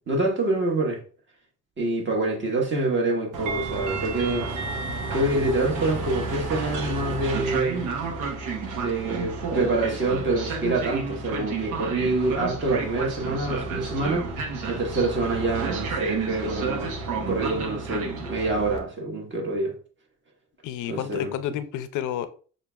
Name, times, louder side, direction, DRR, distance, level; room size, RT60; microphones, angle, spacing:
voice 1, 0.1-1.0 1.8-4.5 5.1-7.8 8.7-14.3 14.7-19.7 20.9-21.3, right 2 dB, 40° right, 1.3 m, -26 dB
Train, 3.3-18.8, right 4 dB, 90° right, 0.9 m, -31 dB
voice 2, 20.6-22.3, left 10 dB, 80° left, 0.6 m, -30 dB
6.2 x 2.5 x 2.3 m
cardioid pair, 90°, 30 cm